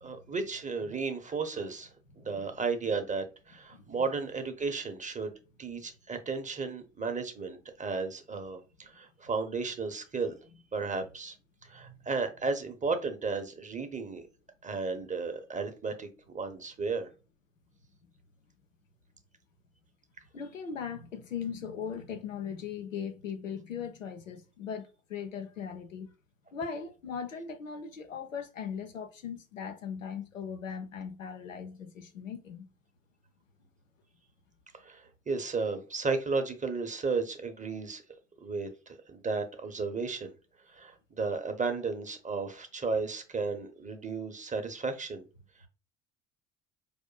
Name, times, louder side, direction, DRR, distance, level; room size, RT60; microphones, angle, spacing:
voice 1, 0.0-1.9 2.2-5.3 5.6-10.4 10.7-11.3 11.6-14.2 14.6-16.1 16.3-17.1 34.8-38.0 38.4-40.3 40.7-45.2, right 4 dB, 20° right, 0.8 m, -34 dB
voice 2, 3.7-4.0 11.8-12.0 20.3-26.1 26.5-32.7, left 7 dB, 90° left, 0.5 m, -39 dB
5.0 x 2.5 x 2.2 m
figure-of-eight pair, 55°, 38 cm